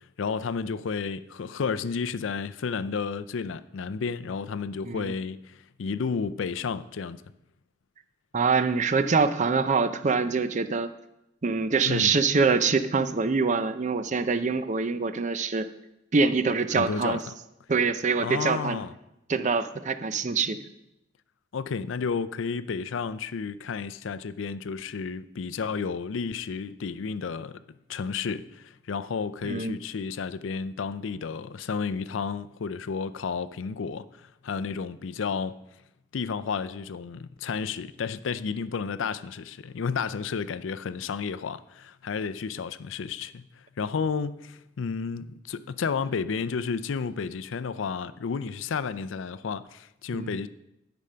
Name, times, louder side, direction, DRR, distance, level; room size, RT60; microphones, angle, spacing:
voice 1, 0.2-7.2 11.8-12.1 16.7-17.3 18.2-18.9 21.5-27.6 27.9-35.5 36.1-50.5, left 5 dB, 75° left, 0.4 m, -32 dB
voice 2, 8.3-10.9 11.4-15.7 16.1-17.2 17.7-18.8 19.3-20.7 29.4-29.8 50.1-50.3, right 4 dB, 40° right, 0.5 m, -25 dB
12.0 x 5.2 x 5.6 m
head